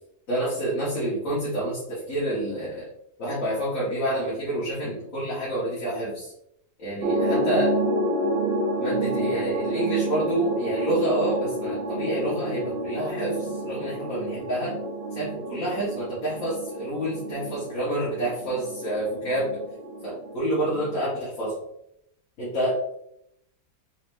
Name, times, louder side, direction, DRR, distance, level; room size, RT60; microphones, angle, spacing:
voice 1, 0.3-2.8 3.2-6.3 6.8-7.7 8.8-14.8 15.1-19.6 20.0-21.6 22.4-22.9, right 1 dB, 65° left, -8 dB, 1.8 m, -28 dB
sound 1, 7.0-21.0, right 1 dB, 55° right, 0.6 m, -29 dB
4.3 x 4.1 x 2.6 m, 0.77 s
omnidirectional pair, 1.5 m